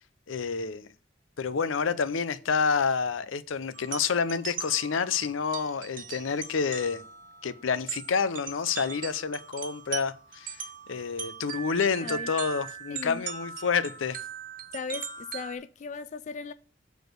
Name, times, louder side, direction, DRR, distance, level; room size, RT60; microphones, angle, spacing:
voice 1, 0.3-0.9 1.4-7.0 7.4-10.6 10.9-14.2, left 5 dB, 90° left, 0.6 m, -28 dB
sound 1, 3.7-15.6, right 7 dB, 45° right, 0.8 m, -40 dB
voice 2, 12.9-13.3 14.7-16.5, left 4 dB, 40° left, 0.3 m, -37 dB
6.8 x 4.1 x 6.5 m
head